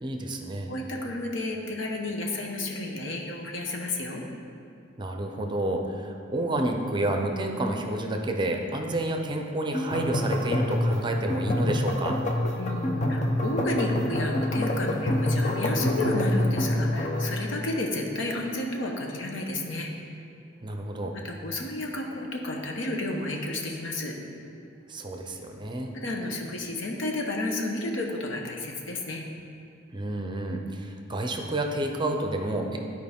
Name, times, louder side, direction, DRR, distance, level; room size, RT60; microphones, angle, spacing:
voice 1, 0.0-0.7 5.0-12.2 20.6-21.1 24.9-25.9 29.9-32.8, right 1 dB, 25° right, 3 dB, 0.6 m, -30 dB
voice 2, 0.7-4.2 12.6-19.9 21.2-24.1 25.9-29.2, left 2 dB, 70° left, 1 dB, 1.0 m, -31 dB
sound 1, 9.7-17.3, left 1 dB, 40° left, 0.7 m, -26 dB
12.0 x 4.6 x 3.6 m, 2.6 s
head